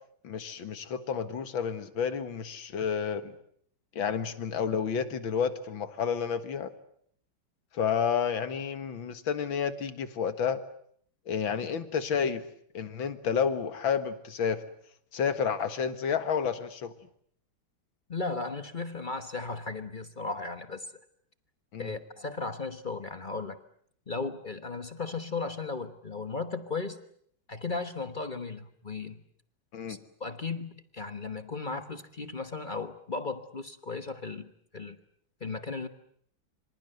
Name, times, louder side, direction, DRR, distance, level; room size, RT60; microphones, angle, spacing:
voice 1, 0.2-3.3 4.0-6.7 7.7-10.6 11.3-12.4 12.7-14.6 15.1-16.9 21.7-22.0 29.7-30.0, left 7 dB, 70° left, 11 dB, 2.4 m, -30 dB
voice 2, 18.1-20.9 21.8-23.6 24.1-27.0 27.5-29.2 29.9-35.0 35.4-35.9, left 4 dB, 30° left, 10 dB, 1.1 m, -36 dB
26.0 x 25.5 x 7.9 m, 0.65 s
omnidirectional pair, 2.2 m